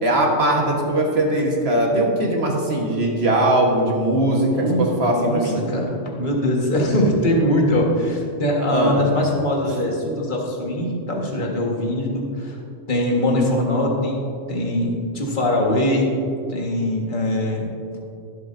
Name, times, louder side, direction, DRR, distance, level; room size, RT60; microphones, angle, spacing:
voice 1, 0.0-5.6 8.7-9.0, right 1 dB, 55° right, 0 dB, 1.6 m, -20 dB
voice 2, 4.5-12.6 12.9-16.1 16.5-17.7, left 1 dB, 40° left, -2 dB, 1.6 m, -22 dB
15.5 x 7.7 x 2.6 m, 2.5 s
omnidirectional pair, 1.4 m